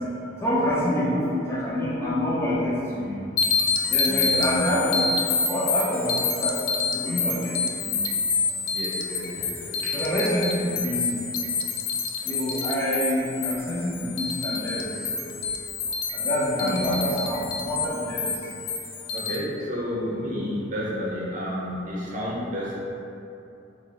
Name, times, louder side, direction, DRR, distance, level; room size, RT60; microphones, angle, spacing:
voice 1, 0.4-3.1 3.9-8.0 9.8-11.2 12.3-15.3 16.1-18.3, equal, 15° left, -8 dB, 0.5 m, -27 dB
sound 1, 3.4-19.3, left 5 dB, 80° left, 0.3 m, -28 dB
voice 2, 4.0-4.6 8.7-9.9 16.6-16.9 19.1-22.8, equal, 40° right, -6 dB, 0.7 m, -31 dB
3.0 x 2.9 x 3.7 m, 2.8 s
head